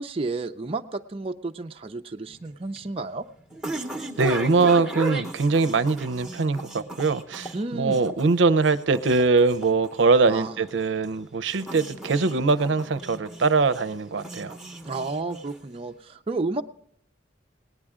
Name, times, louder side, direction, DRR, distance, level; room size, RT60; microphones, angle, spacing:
voice 1, 0.0-3.3 7.5-8.0 10.3-10.5 14.8-16.6, right 3 dB, 30° right, 5 dB, 0.5 m, -31 dB
sound 1, 2.3-15.8, right 2 dB, ahead, 1.0 m, -37 dB
voice 2, 4.2-14.6, right 4 dB, 75° right, 14 dB, 0.6 m, -22 dB
18.5 x 10.0 x 3.6 m, 0.68 s
head